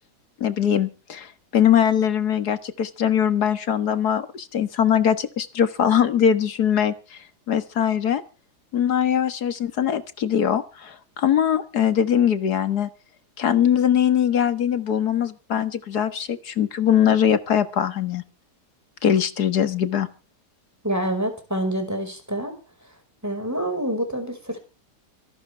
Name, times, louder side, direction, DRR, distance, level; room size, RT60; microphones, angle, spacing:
voice 1, 0.4-7.2 7.5-8.2 8.7-12.9 13.4-18.2 19.0-20.1, left 9 dB, 75° left, 11 dB, 2.1 m, -21 dB
voice 2, 20.8-22.5 23.2-24.6, right 1 dB, 10° right, 5 dB, 5.2 m, -27 dB
26.0 x 12.0 x 3.5 m, 0.34 s
omnidirectional pair, 1.7 m